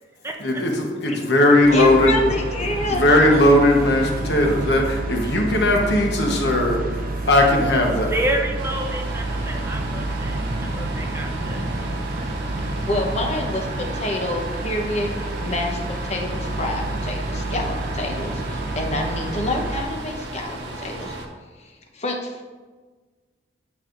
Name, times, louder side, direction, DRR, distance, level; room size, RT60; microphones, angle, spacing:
voice 1, 0.4-2.2 2.9-8.1, left 1 dB, 70° left, 1 dB, 1.1 m, -18 dB
sound 1, 1.6-19.8, right 2 dB, 55° right, 0.7 m, -29 dB
voice 2, 1.7-3.0 12.8-21.2 21.6-22.4, left 1 dB, 40° left, 2 dB, 1.0 m, -28 dB
voice 3, 8.1-11.6, right 1 dB, 15° right, 2 dB, 0.6 m, -29 dB
sound 2, 8.6-21.3, right 2 dB, 85° right, 1.0 m, -35 dB
9.4 x 5.6 x 2.6 m, 1.4 s
head